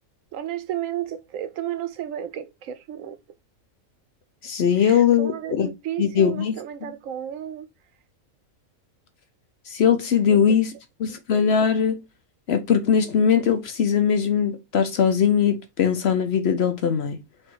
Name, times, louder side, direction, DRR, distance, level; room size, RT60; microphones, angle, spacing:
voice 1, 0.3-3.2 4.8-7.7 10.3-10.6, right 11 dB, 75° right, 1.0 m, -33 dB
voice 2, 4.4-5.7 6.0-6.9 9.7-10.7 11.0-12.0 12.5-17.2, left 7 dB, 60° left, 0.8 m, -21 dB
4.4 x 2.5 x 4.5 m
omnidirectional pair, 1.4 m